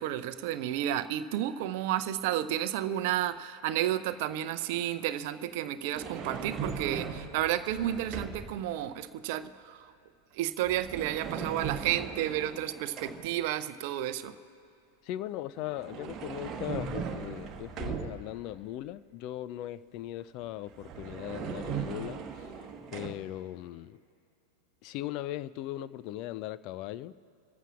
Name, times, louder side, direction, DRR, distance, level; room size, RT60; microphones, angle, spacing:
voice 1, 0.0-9.9 10.3-14.3, right 12 dB, 50° right, 12 dB, 0.6 m, -31 dB
sound 1, 5.9-8.6 10.6-13.4 15.6-18.5 20.4-20.5 20.7-23.1, right 6 dB, 30° right, 1.2 m, -38 dB
voice 2, 15.0-22.5 22.9-24.0 24.8-27.1, left 14 dB, 40° left, 15 dB, 0.4 m, -39 dB
28.0 x 14.5 x 2.5 m, 2.5 s
figure-of-eight pair, 90°, 0 cm